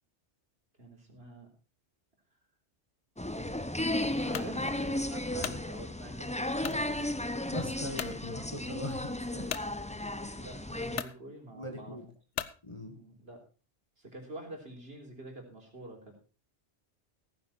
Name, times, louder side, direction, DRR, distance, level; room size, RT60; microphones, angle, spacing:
voice 1, 0.8-1.5 4.0-7.1 10.3-12.0 12.9-13.4 14.0-16.2, right 1 dB, 60° right, 1 dB, 3.9 m, -47 dB
sound 1, 3.2-11.0, left 1 dB, 10° left, 0.6 m, -34 dB
sound 2, 4.3-4.5 5.1-5.6 6.6-6.8 7.4-7.5 7.9-8.2 9.5-9.7 10.5-10.6 10.9-11.2 12.3-12.6, left 9 dB, 80° left, 1.1 m, -37 dB
voice 2, 7.5-9.5 11.6-12.1 12.6-13.0, left 1 dB, 25° left, 4 dB, 2.0 m, -40 dB
16.5 x 9.6 x 4.3 m, 0.34 s
omnidirectional pair, 1.2 m